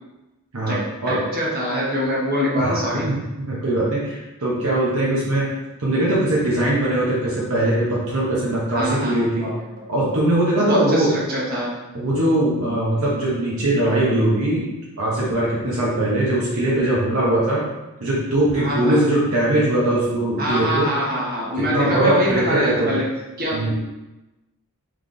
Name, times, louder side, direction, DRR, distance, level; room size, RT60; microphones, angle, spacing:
voice 1, 0.7-3.1 8.7-9.5 10.1-10.2 10.6-11.7 18.5-19.0 20.4-23.0 23.4-23.7, equal, 45° right, -6 dB, 1.3 m, -24 dB
voice 2, 2.6-5.4 5.8-9.5 9.9-11.1 11.9-14.7 15.0-17.6 18.0-20.9 21.7-22.9 23.5-23.7, right 1 dB, 70° right, -6 dB, 1.0 m, -21 dB
3.8 x 3.3 x 3.8 m, 1.0 s
head